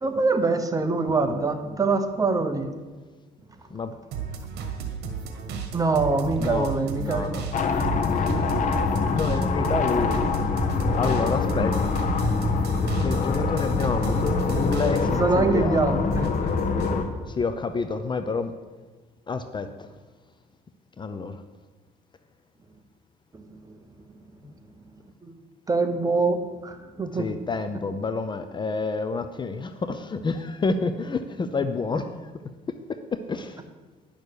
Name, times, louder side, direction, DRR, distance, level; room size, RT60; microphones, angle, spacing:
voice 1, 0.0-2.7 5.7-7.4 15.1-16.3 23.3-23.8 25.2-25.3 25.7-27.3, right 3 dB, 20° right, 7 dB, 1.1 m, -24 dB
sound 1, 4.1-15.3 15.6-17.0, right 6 dB, 75° right, 1.5 m, -34 dB
voice 2, 6.4-6.7 7.0-7.5 9.0-10.2 10.9-12.1 13.0-15.8 17.3-18.5 19.3-19.9 21.0-21.4 24.4-24.5 27.2-32.3 33.3-33.6, left 4 dB, 25° left, 9 dB, 0.6 m, -28 dB
sound 2, 7.5-17.0, left 4 dB, 50° left, 1.2 m, -24 dB
10.5 x 6.4 x 6.9 m, 1.3 s
cardioid pair, 110°, 17 cm